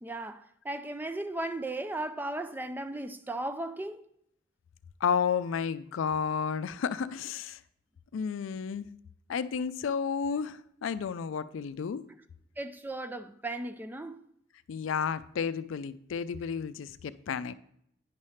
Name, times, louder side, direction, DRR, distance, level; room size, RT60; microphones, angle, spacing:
voice 1, 0.0-4.0 12.6-14.2, right 2 dB, 10° right, 0.3 m, -36 dB
voice 2, 5.0-7.6 8.1-8.9 9.3-12.0 14.7-17.5, left 6 dB, 75° left, 0.4 m, -32 dB
9.6 x 3.2 x 5.6 m
head